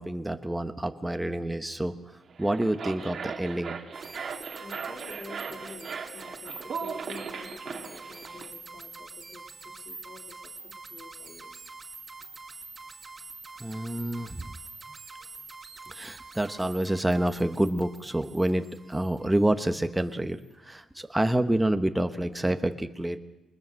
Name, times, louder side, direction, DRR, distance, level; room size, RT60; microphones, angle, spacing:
voice 1, 0.0-2.0 2.4-3.8 13.6-14.5 15.9-23.2, right 1 dB, 10° right, 8 dB, 1.1 m, -28 dB
sound 1, 2.3-8.5, right 6 dB, 50° right, 2.0 m, -38 dB
sound 2, 3.9-19.8, right 3 dB, 30° right, 2.2 m, -45 dB
voice 2, 4.6-11.6 14.8-15.5, left 3 dB, 45° left, 3 dB, 3.2 m, -48 dB
22.5 x 20.5 x 6.4 m, 1.0 s
cardioid pair, 90°, 0 cm